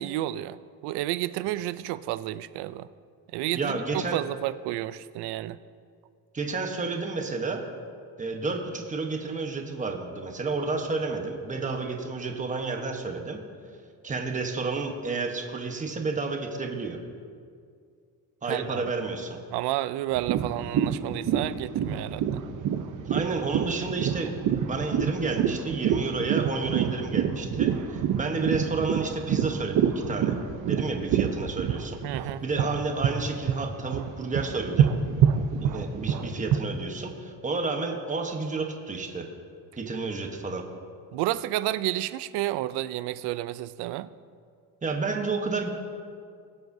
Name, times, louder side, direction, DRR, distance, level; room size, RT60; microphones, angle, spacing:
voice 1, 0.0-2.9 3.3-5.6 18.4-18.8 19.5-22.4 32.0-32.4 41.1-44.1, right 14 dB, 90° right, 15 dB, 0.5 m, -31 dB
voice 2, 3.5-4.2 6.3-7.6 8.2-13.4 14.0-17.0 18.4-19.4 23.1-30.4 30.7-32.0 32.4-34.9 35.6-39.3 39.8-40.6 44.8-45.7, right 3 dB, 20° right, 3 dB, 1.1 m, -31 dB
sound 1, 20.1-33.2 33.5-36.6, right 9 dB, 50° right, 0.7 m, -26 dB
22.0 x 7.7 x 2.7 m, 2.2 s
cardioid pair, 145°, 39 cm